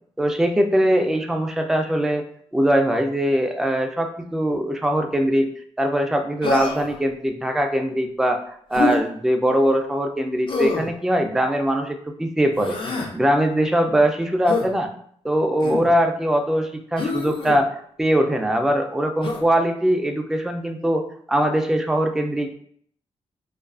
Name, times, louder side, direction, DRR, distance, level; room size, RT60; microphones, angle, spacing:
voice 1, 0.2-2.2 2.5-5.5 5.8-8.4 8.7-12.8 13.1-14.9 15.2-17.7 18.0-21.0 21.3-22.5, equal, 5° right, 4 dB, 0.3 m, -21 dB
Human voice, 6.4-7.0 8.7-9.0 10.5-10.9 12.5-13.1 14.5-14.7 15.6-15.9 17.0-17.6 19.2-19.5, left 3 dB, 50° left, 0.5 m, -25 dB
2.3 x 2.3 x 2.3 m, 0.63 s
cardioid pair, 65°, 12 cm